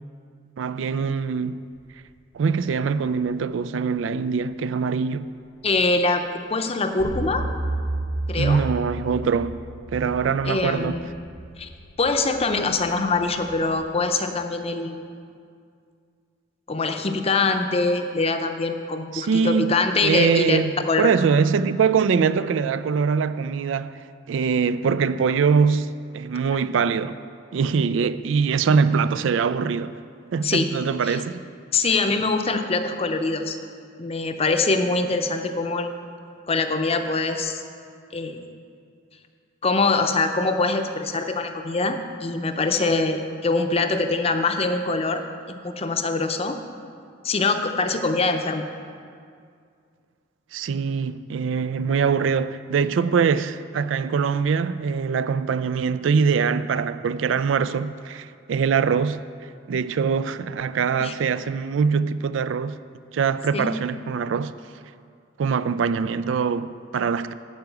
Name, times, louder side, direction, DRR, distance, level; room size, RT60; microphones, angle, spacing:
voice 1, 0.6-1.6 2.3-5.3 8.4-9.6 9.9-11.0 19.1-20.7 21.0-27.2 27.5-29.9 30.3-31.5 50.5-59.2 59.7-62.8 63.1-64.5 65.4-67.3, right 6 dB, 75° right, 0.3 m, -23 dB
voice 2, 5.6-6.2 6.5-7.4 8.3-8.6 10.5-11.1 11.6-11.7 12.0-15.0 16.7-20.6 20.8-21.0 30.4-30.7 31.0-31.2 31.7-33.6 34.0-35.9 36.5-37.6 38.1-38.4 39.6-45.2 45.6-46.6 47.2-48.6 61.0-61.1 63.5-63.7, left 3 dB, 30° left, 0.6 m, -23 dB
sound 1, 7.0-13.9, right 1 dB, 60° right, 0.8 m, -33 dB
11.5 x 4.8 x 7.9 m
head